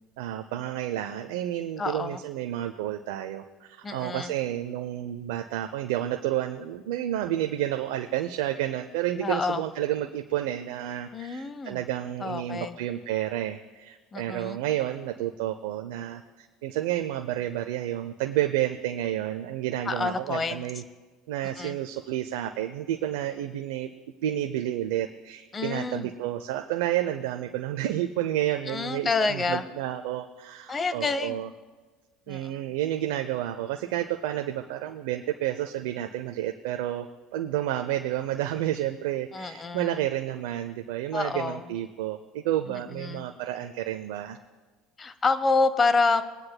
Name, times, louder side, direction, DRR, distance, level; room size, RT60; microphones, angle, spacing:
voice 1, 0.2-20.8 21.3-23.9 24.2-31.5 32.3-44.4, right 12 dB, 80° right, 6 dB, 0.6 m, -30 dB
voice 2, 1.8-2.2 3.8-4.3 9.2-9.6 11.1-11.8 12.2-12.8 14.1-14.6 19.8-20.6 21.6-21.8 25.5-26.1 28.7-29.6 30.7-31.4 32.3-32.5 39.3-40.1 41.1-41.7 42.7-43.2 45.0-46.2, left 4 dB, 30° left, 13 dB, 0.8 m, -28 dB
22.5 x 9.7 x 2.2 m, 1.4 s
supercardioid pair, 85°, 0 cm